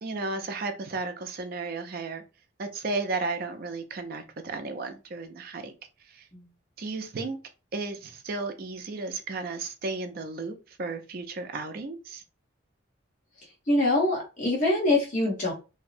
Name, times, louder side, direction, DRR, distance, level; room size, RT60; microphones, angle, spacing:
voice 1, 0.0-2.2 2.6-5.7 6.1-6.2 6.8-7.4 7.7-12.2, right 3 dB, 45° right, 7 dB, 0.4 m, -34 dB
voice 2, 13.7-15.5, left 2 dB, 40° left, -3 dB, 1.0 m, -24 dB
2.7 x 2.1 x 2.4 m, 0.30 s
head